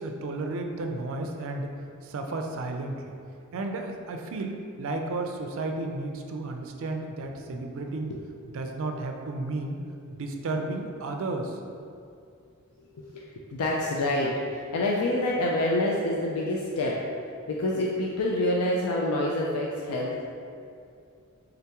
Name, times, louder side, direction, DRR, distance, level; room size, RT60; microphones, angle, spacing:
voice 1, 0.0-1.7 2.0-3.1 3.5-8.1 8.5-9.8 10.1-11.6, right 2 dB, 65° right, 4 dB, 0.4 m, -33 dB
voice 2, 12.8-17.0 17.5-20.3, left 1 dB, 85° left, -2 dB, 0.4 m, -27 dB
3.7 x 3.4 x 2.9 m, 2.5 s
head